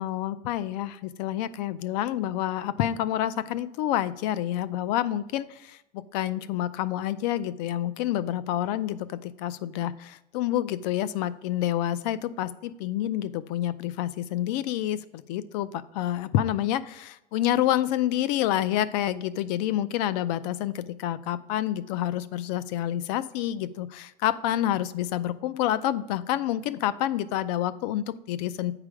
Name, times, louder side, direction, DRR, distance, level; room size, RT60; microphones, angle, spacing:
voice 1, 0.0-28.7, left 12 dB, 80° left, 16 dB, 0.5 m, -28 dB
8.4 x 4.9 x 4.9 m, 0.89 s
cardioid pair, 150°, 21 cm